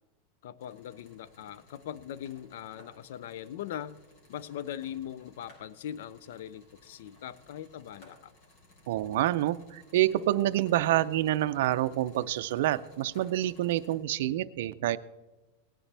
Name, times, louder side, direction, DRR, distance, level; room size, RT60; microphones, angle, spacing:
voice 1, 0.4-4.0 4.3-8.3, left 10 dB, 70° left, 18 dB, 0.5 m, -41 dB
sound 1, 0.6-14.0, left 2 dB, 50° left, 3.6 m, -59 dB
voice 2, 8.9-15.0, right 14 dB, 65° right, 12 dB, 0.5 m, -27 dB
18.0 x 10.0 x 3.4 m, 1.1 s
supercardioid pair, 155°, 0 cm